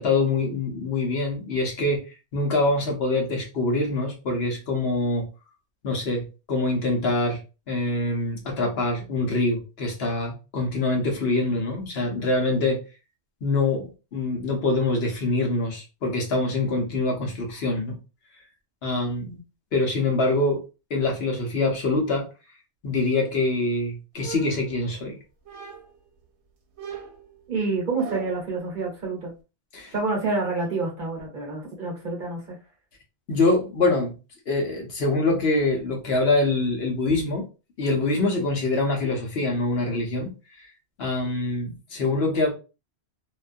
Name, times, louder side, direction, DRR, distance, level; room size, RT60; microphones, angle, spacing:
voice 1, 0.0-2.0 2.3-5.3 5.8-7.4 7.7-12.8 13.4-18.0 18.8-19.4 19.7-20.6 20.9-22.3 22.8-25.2 29.7-29.9 33.3-34.1 34.5-37.5 37.8-40.3 40.6-40.7 41.0-42.5, left 2 dB, 65° left, 1 dB, 1.0 m, -24 dB
sound 1, 24.2-25.1 25.5-26.1 26.8-28.5, right 7 dB, 85° right, 0.9 m, -39 dB
voice 2, 27.5-29.3 29.9-32.6, right 3 dB, 50° right, -1 dB, 1.0 m, -28 dB
2.5 x 2.3 x 2.5 m, 0.31 s
omnidirectional pair, 1.1 m